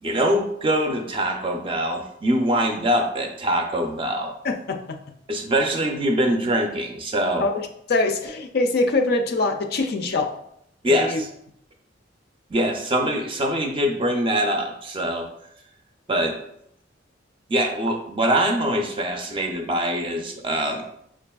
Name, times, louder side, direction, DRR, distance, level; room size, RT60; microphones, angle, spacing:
voice 1, 0.0-4.3 5.3-7.5 10.8-11.3 12.5-15.3 16.1-16.4 17.5-20.8, equal, 25° right, 3 dB, 0.4 m, -23 dB
voice 2, 4.4-5.0 7.4-10.3 10.9-11.2, left 3 dB, 55° left, 6 dB, 0.4 m, -24 dB
5.8 x 2.4 x 2.2 m, 0.73 s
head